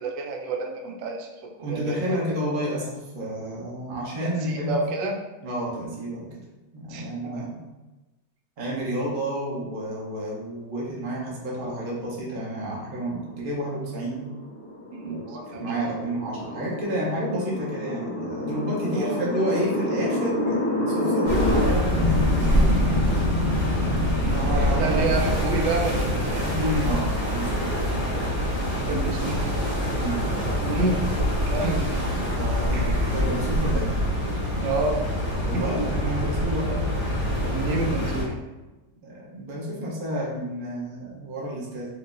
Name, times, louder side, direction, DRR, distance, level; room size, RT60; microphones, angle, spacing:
voice 1, 0.0-2.4 4.2-5.2 6.9-7.4 14.9-16.0 18.9-19.2 24.2-26.5 28.9-29.6 30.6-31.0 31.5-32.2 32.7-33.2 34.6-35.1 35.4-35.8 36.7-36.8 37.5-38.4, right 3 dB, 85° right, 2 dB, 1.2 m, -29 dB
voice 2, 1.6-4.7 5.4-6.4 6.7-7.7 8.6-14.3 15.0-23.1 24.3-25.1 26.5-27.7 29.9-30.2 32.3-34.0 35.4-36.7 39.0-41.9, right 1 dB, 40° right, -5 dB, 0.8 m, -30 dB
sound 1, 12.8-25.4, left 1 dB, 45° left, 0.9 m, -29 dB
sound 2, 21.3-38.2, equal, 65° right, 1.9 m, -25 dB
4.6 x 2.6 x 2.5 m, 1.1 s
omnidirectional pair, 1.9 m